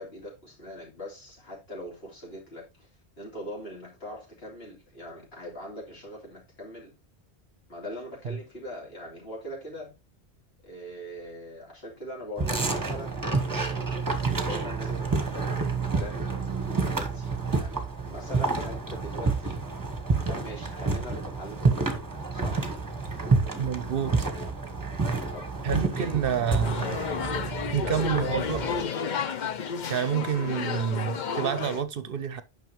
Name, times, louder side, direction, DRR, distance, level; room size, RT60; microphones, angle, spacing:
voice 1, 0.0-2.9 3.2-6.9 7.7-9.9 10.6-13.8 14.4-19.6 20.3-22.7 25.3-26.2 27.8-29.3, equal, 65° left, 3.5 m, -41 dB
sound 1, 12.4-28.8, right 4 dB, 20° right, 1.1 m, -29 dB
voice 2, 23.6-24.3 25.6-27.1 27.7-28.6 29.9-32.4, right 8 dB, 60° right, 0.8 m, -28 dB
sound 2, 26.6-31.8, left 6 dB, 50° left, 0.7 m, -32 dB
9.2 x 5.7 x 3.0 m
omnidirectional pair, 1.1 m